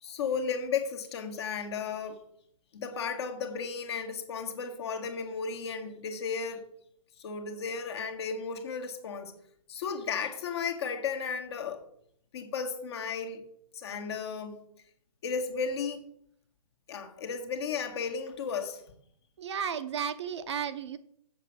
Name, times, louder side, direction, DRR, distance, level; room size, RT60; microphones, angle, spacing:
voice 1, 0.0-2.2 2.7-6.6 7.2-9.3 9.7-11.8 12.3-13.4 13.7-14.6 15.2-16.0 16.9-18.8, left 5 dB, 45° left, 4 dB, 1.7 m, -34 dB
voice 2, 19.4-21.0, right 7 dB, 45° right, 10 dB, 0.8 m, -33 dB
7.3 x 6.8 x 6.7 m, 0.68 s
figure-of-eight pair, 140°, 20 cm